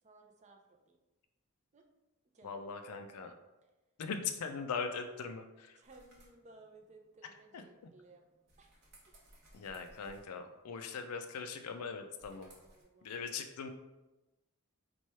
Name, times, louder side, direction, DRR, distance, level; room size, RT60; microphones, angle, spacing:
voice 1, 0.0-1.0 1.7-1.9 2.3-2.7 5.8-8.2 8.6-8.7 12.6-13.3, right 2 dB, 30° right, 2 dB, 0.4 m, -59 dB
voice 2, 2.4-3.3 4.0-5.8 7.5-7.6 9.5-12.5 13.0-13.7, left 5 dB, 85° left, 7 dB, 0.4 m, -40 dB
sound 1, 5.8-12.8, right 1 dB, 50° right, 0.9 m, -65 dB
3.1 x 2.3 x 4.2 m, 1.1 s
head